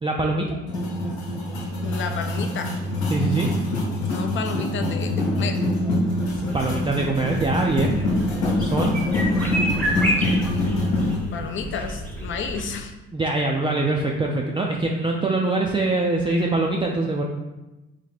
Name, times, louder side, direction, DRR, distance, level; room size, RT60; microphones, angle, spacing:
voice 1, 0.0-0.5 3.1-3.5 6.5-7.9 8.6-8.9 13.1-17.2, right 2 dB, 20° right, -1 dB, 0.4 m, -23 dB
sound 1, 0.7-11.2, left 1 dB, 70° left, 1.0 m, -25 dB
voice 2, 1.8-2.7 4.1-5.6 11.3-12.9, left 5 dB, 45° left, 6 dB, 0.5 m, -31 dB
sound 2, 5.8-12.8, equal, 5° left, 0.8 m, -30 dB
2.9 x 2.1 x 4.1 m, 1.0 s
supercardioid pair, 60°, 29 cm